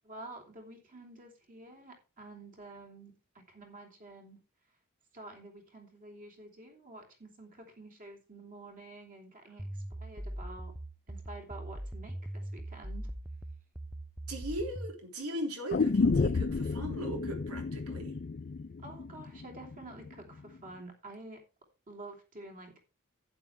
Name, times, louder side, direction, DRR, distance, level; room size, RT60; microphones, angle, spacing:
voice 1, 0.0-3.2 3.5-4.4 5.1-10.7 11.1-13.1 18.8-21.4 21.9-22.7, right 2 dB, 40° right, 3.2 m, -49 dB
sound 1, 9.6-15.0, right 1 dB, 5° right, 0.5 m, -41 dB
voice 2, 14.3-18.2, right 1 dB, 80° right, 3.5 m, -38 dB
sound 2, 15.7-19.8 20.1-20.2, left 4 dB, 40° left, 0.5 m, -31 dB
11.5 x 9.5 x 3.4 m
head